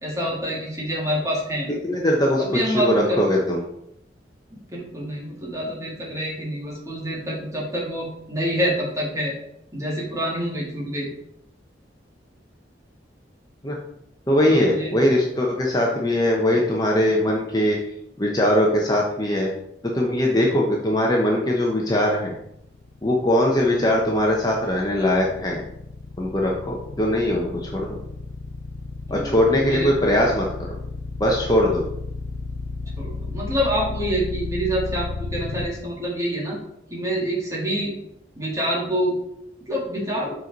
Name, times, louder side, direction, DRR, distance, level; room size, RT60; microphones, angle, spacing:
voice 1, 0.0-1.7 2.4-3.3 4.5-9.3 9.7-11.1 14.4-15.0 29.1-29.9 33.0-36.6 36.9-37.9 38.4-39.2 39.7-40.3, equal, 15° right, -3 dB, 2.0 m, -27 dB
voice 2, 1.8-3.6 13.6-13.8 14.3-17.8 18.2-19.5 19.8-22.3 23.0-25.6 26.2-28.0 29.1-30.8 31.2-31.8, left 1 dB, 20° left, -2 dB, 0.9 m, -21 dB
sound 1, 22.4-35.7, left 3 dB, 65° left, 0.5 m, -33 dB
7.5 x 4.6 x 4.0 m, 0.78 s
head